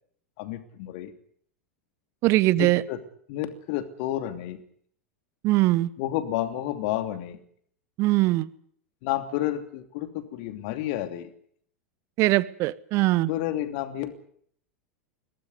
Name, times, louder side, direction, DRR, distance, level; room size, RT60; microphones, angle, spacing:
voice 1, 0.4-1.1 2.6-3.0 3.3-4.6 6.0-7.4 9.0-11.3 13.3-14.1, left 13 dB, 50° left, 2.9 m, -30 dB
voice 2, 2.2-2.8 5.4-5.9 8.0-8.5 12.2-13.3, right 18 dB, 40° right, 1.0 m, -21 dB
22.0 x 18.5 x 9.6 m
figure-of-eight pair, 85°, 7 cm